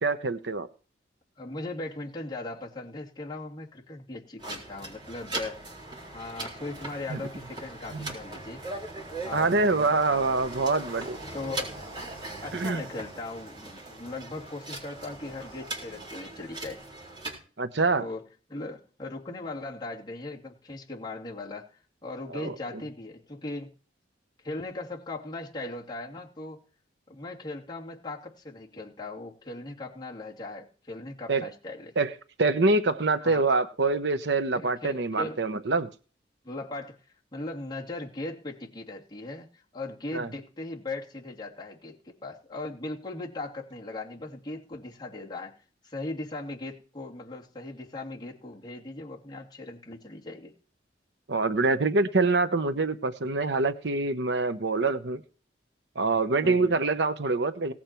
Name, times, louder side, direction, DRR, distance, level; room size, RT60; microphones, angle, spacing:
voice 1, 0.0-0.7 7.1-7.2 7.9-8.1 9.3-11.2 12.5-12.8 17.6-18.1 22.3-22.5 31.3-31.4 32.0-32.1 32.4-35.9 40.1-40.3 51.3-55.2 56.0-57.7, right 3 dB, 65° right, 10 dB, 0.9 m, -25 dB
voice 2, 1.4-5.6 6.1-8.6 9.2-10.0 11.3-11.8 12.4-16.8 18.0-21.7 22.0-23.7 24.4-26.6 27.1-31.9 33.2-33.4 34.5-35.5 36.4-37.0 37.3-50.5 56.4-56.7, left 2 dB, 25° left, -4 dB, 2.8 m, -39 dB
sound 1, 4.4-17.4, right 2 dB, 25° right, 3.9 m, -40 dB
18.0 x 8.6 x 4.5 m, 0.39 s
head